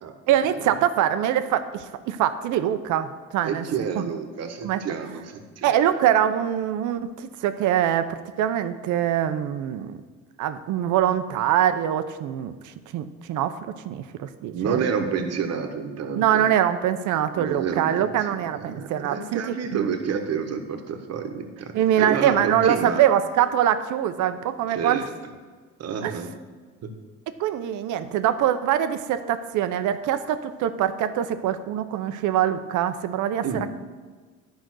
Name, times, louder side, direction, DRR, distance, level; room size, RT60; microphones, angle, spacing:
voice 1, 0.3-3.7 4.0-4.1 4.6-4.8 5.6-10.0 10.4-14.8 16.1-19.9 21.7-25.1 26.0-26.2 27.4-33.7, right 10 dB, 75° right, 11 dB, 0.7 m, -24 dB
voice 2, 3.4-5.7 14.5-16.4 17.4-18.1 18.5-23.0 24.7-25.0 25.8-26.3 26.8-26.9 33.4-33.6, right 6 dB, 55° right, 5 dB, 1.2 m, -29 dB
10.5 x 5.2 x 6.2 m, 1.4 s
cardioid pair, 105°, 31 cm